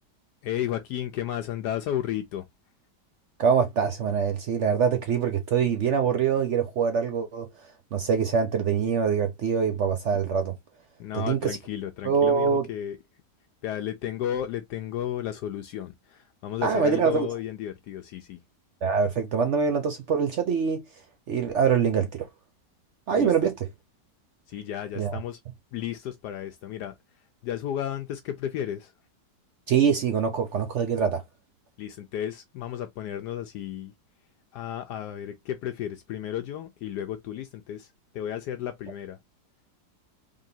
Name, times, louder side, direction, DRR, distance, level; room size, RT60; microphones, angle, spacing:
voice 1, 0.4-2.5 11.0-13.0 13.6-18.4 23.2-23.3 24.5-25.4 25.7-26.9 27.4-28.9 31.8-33.9 34.5-39.2, left 10 dB, 75° left, 1.1 m, -33 dB
voice 2, 3.4-7.5 7.9-10.5 11.1-11.6 12.0-12.6 16.6-17.3 18.8-20.8 21.3-22.3 23.1-23.6 25.0-25.2 29.7-31.2, right 6 dB, 65° right, 0.7 m, -24 dB
3.8 x 3.5 x 2.7 m
omnidirectional pair, 1.9 m